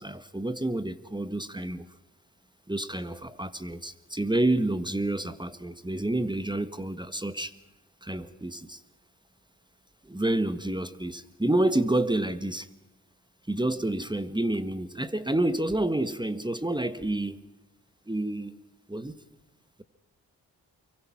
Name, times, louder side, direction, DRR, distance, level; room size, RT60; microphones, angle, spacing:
voice 1, 0.0-1.9 2.7-7.5 8.0-8.8 10.0-12.7 13.5-17.4 18.1-18.5 18.9-19.2, right 1 dB, 10° right, 1.6 m, -29 dB
25.5 x 23.5 x 6.0 m
supercardioid pair, 45°, 41 cm